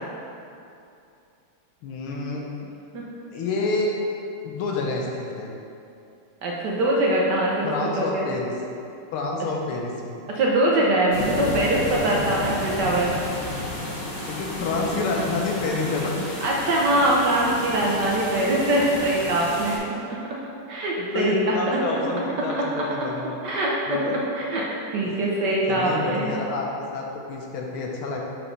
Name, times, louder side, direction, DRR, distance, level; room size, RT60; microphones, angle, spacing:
voice 1, 1.8-2.4 3.3-3.9 4.4-5.5 7.6-8.5 9.1-10.2 14.3-16.1 21.0-23.4 23.9-24.2 25.1-25.2 25.5-28.2, left 3 dB, 75° left, -1 dB, 1.6 m, -28 dB
voice 2, 6.4-7.7 8.0-8.3 10.3-13.2 16.4-19.8 20.1-20.2 20.7-21.8 22.6-23.1 23.4-24.6 24.9-26.4, right 1 dB, 65° right, -4 dB, 1.2 m, -23 dB
sound 1, 11.1-19.8, left 1 dB, 35° left, 1.0 m, -32 dB
5.8 x 4.1 x 5.5 m, 2.7 s
omnidirectional pair, 2.4 m